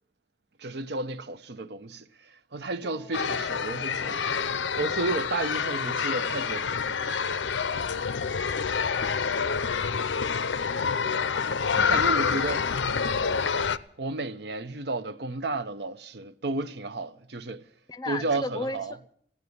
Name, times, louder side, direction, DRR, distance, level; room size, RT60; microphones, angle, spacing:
voice 1, 0.6-4.3 4.8-7.2 11.7-12.7 14.0-17.6 18.1-19.0, right 3 dB, 65° right, 0.7 m, -32 dB
voice 2, 2.8-3.3 8.8-9.5 10.4-10.9 17.9-18.8, left 2 dB, 20° left, 0.6 m, -37 dB
sound 1, 3.1-13.8, left 6 dB, 85° left, 0.6 m, -27 dB
15.5 x 9.6 x 9.5 m
head